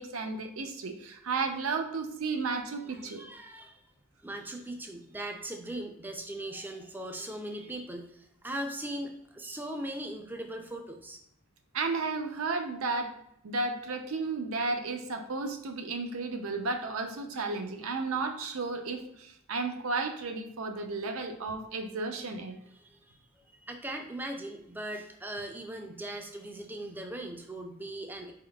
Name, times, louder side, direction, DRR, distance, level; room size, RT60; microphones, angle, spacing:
voice 1, 0.0-3.2 11.7-13.1 13.4-22.6, right 3 dB, 80° right, 5 dB, 0.5 m, -33 dB
voice 2, 2.9-3.8 4.2-11.2 22.7-23.2 23.6-28.3, right 1 dB, 10° right, 4 dB, 0.4 m, -39 dB
4.4 x 3.6 x 2.3 m, 0.75 s
head